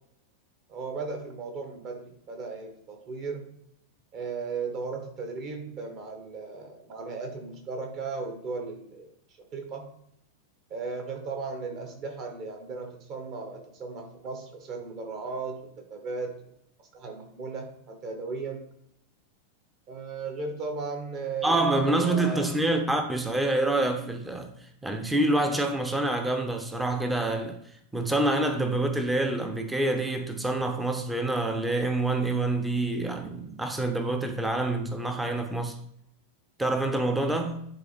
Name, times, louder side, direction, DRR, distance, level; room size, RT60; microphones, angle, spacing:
voice 1, 0.7-3.4 4.1-9.1 9.5-9.9 10.7-16.5 16.9-18.6 19.9-22.5, right 4 dB, 40° right, 1.8 m, -36 dB
voice 2, 21.4-24.5 24.8-27.6 27.9-35.8 36.6-37.7, right 2 dB, 5° right, 0.9 m, -27 dB
10.5 x 3.8 x 3.5 m
figure-of-eight pair, 90°, 0 cm